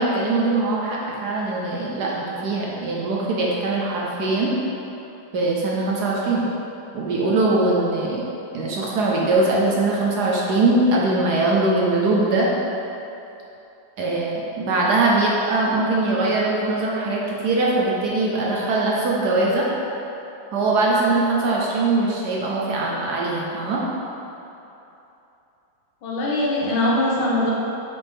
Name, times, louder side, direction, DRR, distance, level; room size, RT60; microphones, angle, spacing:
voice 1, 0.0-4.5 5.3-6.4 6.9-8.2 8.5-12.5 14.0-19.7 20.5-23.8, right 2 dB, 65° right, -4 dB, 1.2 m, -21 dB
voice 2, 26.0-27.5, left 1 dB, 80° left, -5 dB, 1.9 m, -22 dB
6.8 x 5.1 x 3.6 m, 2.9 s
omnidirectional pair, 2.2 m